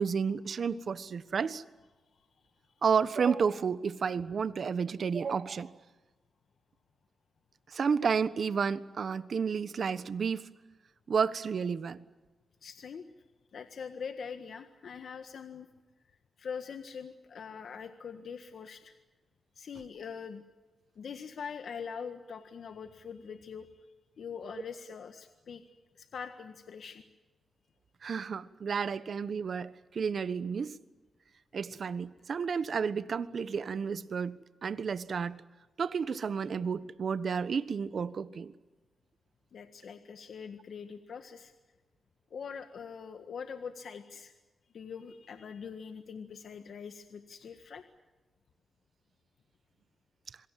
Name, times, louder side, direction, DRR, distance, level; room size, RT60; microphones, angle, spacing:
voice 1, 0.0-1.6 2.8-5.7 7.7-10.5 11.1-12.0 28.0-30.7 31.5-35.4 35.8-38.5, right 6 dB, 60° right, 1.2 m, -31 dB
voice 2, 12.6-13.1 13.5-15.7 16.4-18.9 19.5-20.4 20.9-23.9 24.2-27.0 39.5-41.5 42.3-44.3 44.7-47.8, left 6 dB, 70° left, 1.6 m, -43 dB
27.0 x 24.0 x 7.6 m
cardioid pair, 70°, 0 cm